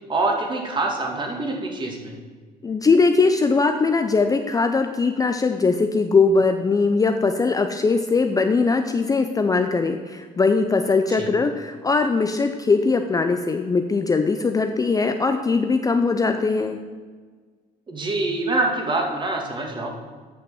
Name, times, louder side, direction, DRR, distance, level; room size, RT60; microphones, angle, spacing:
voice 1, 0.1-2.1 11.2-11.3 17.9-19.9, right 2 dB, 30° right, 2 dB, 2.0 m, -25 dB
voice 2, 2.6-16.8, left 4 dB, 20° left, 6 dB, 0.5 m, -20 dB
8.6 x 6.1 x 7.0 m, 1.5 s
cardioid pair, 110°, 17 cm